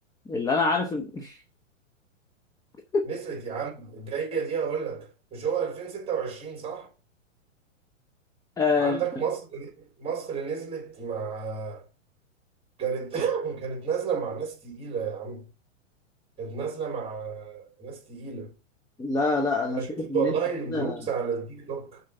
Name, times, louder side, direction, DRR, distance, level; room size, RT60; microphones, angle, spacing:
voice 1, 0.3-1.4 2.9-3.1 8.6-9.0 19.0-20.3 20.7-21.0, left 3 dB, 10° left, 0.7 m, -26 dB
voice 2, 3.0-6.9 8.8-11.9 12.8-15.4 16.4-18.5 19.7-22.0, right 6 dB, 15° right, 3.3 m, -31 dB
6.5 x 4.4 x 6.7 m
hypercardioid pair, 115°, 38 cm